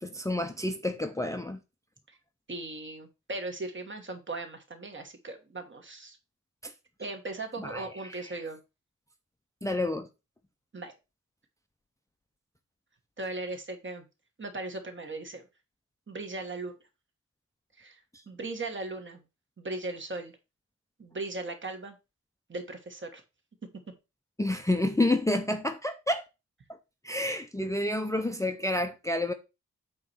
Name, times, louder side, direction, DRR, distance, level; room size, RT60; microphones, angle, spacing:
voice 1, 0.0-1.6 6.6-6.7 7.6-8.3 9.6-10.1 24.4-26.2 27.0-29.3, left 1 dB, 10° left, 0.6 m, -29 dB
voice 2, 2.5-6.2 7.0-8.6 10.7-10.9 13.2-14.0 14.4-15.4 16.1-16.8 17.8-18.0 18.3-19.2 19.6-20.4 21.0-22.0 22.5-23.2, right 2 dB, 40° right, 1.5 m, -38 dB
8.4 x 3.1 x 6.0 m
wide cardioid pair, 160°, 30 cm